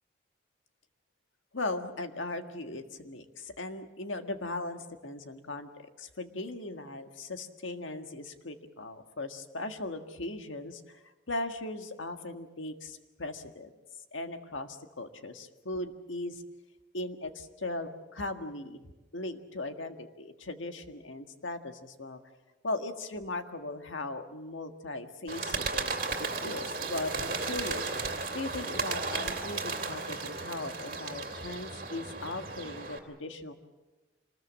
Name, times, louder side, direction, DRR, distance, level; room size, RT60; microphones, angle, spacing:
voice 1, 1.5-13.7 14.1-16.4 16.9-18.8 19.1-22.2 22.6-25.9 26.2-33.5, left 2 dB, 90° left, 7 dB, 1.7 m, -38 dB
Bird, 25.3-33.0, right 3 dB, 50° right, 2.7 m, -35 dB
26.0 x 20.5 x 7.4 m, 1.2 s
head